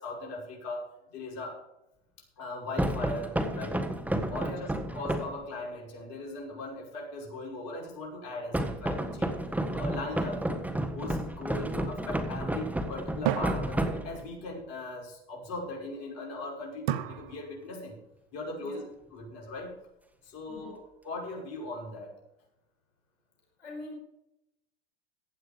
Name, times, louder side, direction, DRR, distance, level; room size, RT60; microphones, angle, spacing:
voice 1, 0.0-0.8 1.1-1.6 2.4-3.8 4.3-9.4 9.7-10.6 10.9-18.0 18.3-18.8 19.1-19.7 20.3-20.8 21.0-22.1, left 2 dB, 50° left, -1 dB, 5.8 m, -39 dB
sound 1, 2.8-5.4 8.5-14.4, right 1 dB, 5° right, 1.5 m, -31 dB
voice 2, 4.4-4.7 18.6-18.8 20.4-20.8 23.6-23.9, left 2 dB, 80° left, -1 dB, 5.1 m, -44 dB
sound 2, 9.6-11.2 13.3-14.6 16.9-18.0, right 12 dB, 60° right, 1.0 m, -36 dB
15.5 x 8.9 x 5.2 m, 0.85 s
hypercardioid pair, 95°, 33 cm